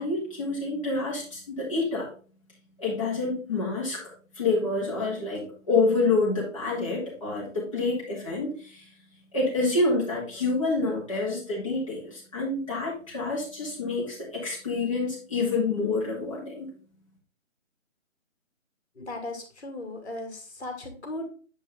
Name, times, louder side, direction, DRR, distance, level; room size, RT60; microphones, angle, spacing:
voice 1, 0.0-2.1 2.8-4.0 4.4-8.9 9.3-16.7, left 3 dB, 25° left, -6 dB, 2.5 m, -27 dB
voice 2, 18.9-21.3, left 2 dB, 55° left, 3 dB, 2.3 m, -37 dB
8.4 x 5.3 x 3.5 m, 0.40 s
hypercardioid pair, 180°, 39 cm